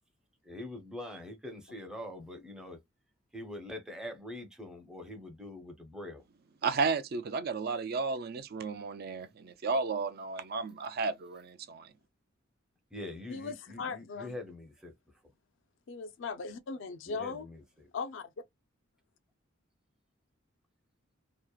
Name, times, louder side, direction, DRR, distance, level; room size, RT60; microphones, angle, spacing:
voice 1, 0.4-2.8 3.3-6.2 12.9-14.9 17.1-17.6, left 1 dB, 5° right, 0.6 m, -43 dB
voice 2, 6.6-11.9, right 4 dB, 50° right, 0.4 m, -33 dB
voice 3, 13.3-14.4 15.9-17.5 17.9-18.3, left 4 dB, 65° left, 0.4 m, -38 dB
2.8 x 2.0 x 2.2 m
head